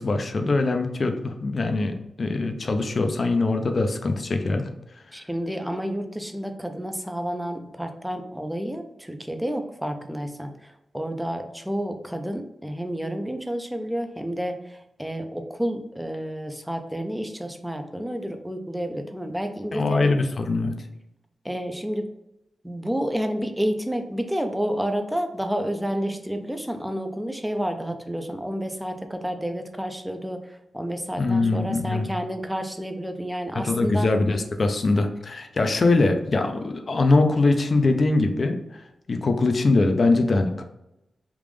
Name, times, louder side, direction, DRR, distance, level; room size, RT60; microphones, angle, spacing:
voice 1, 0.0-4.7 19.7-20.7 31.2-32.1 33.6-38.6 39.1-40.6, left 3 dB, 50° left, 6 dB, 0.5 m, -22 dB
voice 2, 5.1-20.1 21.4-22.1 22.6-34.1, equal, 5° right, 6 dB, 0.5 m, -30 dB
3.5 x 2.4 x 3.2 m, 0.86 s
cardioid pair, 80°, 0 cm